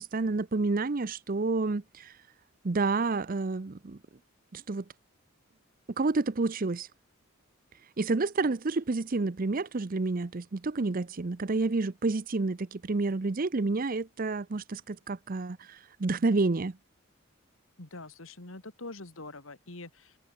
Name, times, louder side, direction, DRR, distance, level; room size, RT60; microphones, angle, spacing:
voice 1, 0.0-2.2 2.6-4.0 4.5-4.8 6.0-6.9 8.0-16.8, right 3 dB, 40° right, 0.6 m, -29 dB
voice 2, 17.8-20.2, left 2 dB, 70° left, 2.6 m, -44 dB
head